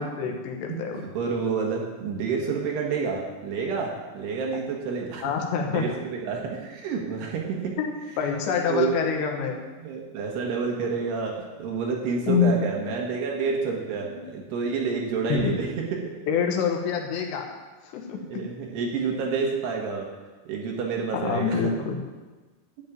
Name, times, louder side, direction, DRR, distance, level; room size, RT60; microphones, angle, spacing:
voice 1, 0.0-1.0 5.2-5.9 7.8-9.6 12.3-12.6 14.0-14.2 15.3-15.5 16.3-17.5 17.8-18.4 21.1-22.0, left 6 dB, 75° left, 2 dB, 3.3 m, -26 dB
voice 2, 0.7-5.3 5.6-7.8 8.7-9.0 9.4-9.5 9.8-16.0 18.2-20.1 20.5-21.7, right 5 dB, 70° right, 0 dB, 3.4 m, -29 dB
12.0 x 5.3 x 9.0 m, 1.2 s
omnidirectional pair, 5.2 m